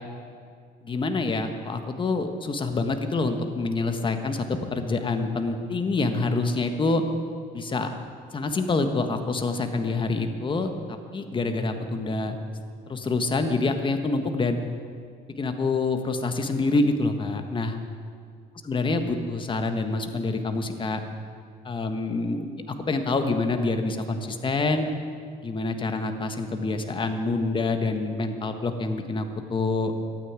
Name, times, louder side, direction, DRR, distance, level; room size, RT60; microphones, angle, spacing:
voice 1, 0.8-7.0 7.5-7.9 8.3-12.4 12.9-14.6 15.4-17.8 18.7-21.0 21.6-24.9 25.4-30.0, left 3 dB, 30° left, 7 dB, 1.4 m, -26 dB
12.5 x 9.4 x 9.6 m, 2.1 s
cardioid pair, 110°, 17 cm